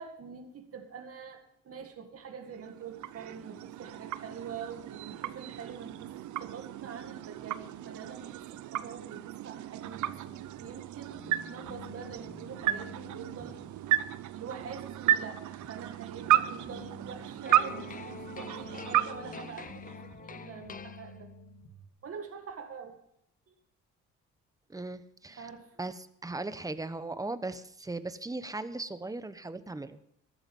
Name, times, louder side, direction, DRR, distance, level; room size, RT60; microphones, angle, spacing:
voice 1, 0.0-6.1 6.4-8.4 8.7-13.6 14.3-21.3 22.0-23.0 23.5-23.6 25.4-25.7, right 6 dB, 50° right, 4 dB, 2.1 m, -45 dB
sound 1, 2.5-20.2, right 13 dB, 75° right, 0.7 m, -33 dB
sound 2, 9.8-21.9, equal, 60° left, 2.9 m, -51 dB
sound 3, 17.4-21.5, left 6 dB, 30° left, 0.7 m, -46 dB
voice 2, 24.7-25.5 25.8-30.0, right 2 dB, 10° right, 12 dB, 1.0 m, -38 dB
14.0 x 12.0 x 5.5 m, 0.73 s
cardioid pair, 90°, 30 cm